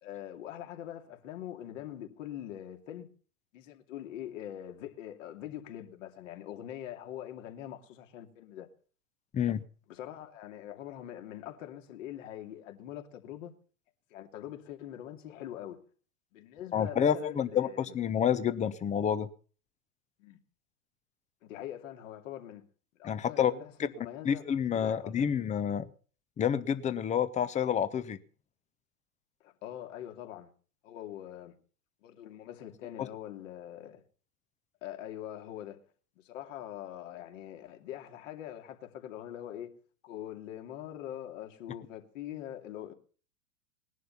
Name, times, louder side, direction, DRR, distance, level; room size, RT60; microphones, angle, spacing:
voice 1, 0.0-3.1 3.5-8.7 9.9-13.6 14.1-15.8 16.3-18.0 20.2-20.4 21.4-22.6 23.0-25.3 29.4-30.5 30.8-31.6 32.0-34.0 34.8-35.8 36.2-39.7 40.0-42.9, left 11 dB, 55° left, 2.7 m, -43 dB
voice 2, 16.7-19.3 23.0-23.5 24.2-25.9 26.4-28.2, left 8 dB, 15° left, 0.9 m, -29 dB
19.5 x 11.0 x 5.7 m
figure-of-eight pair, 100°, 46 cm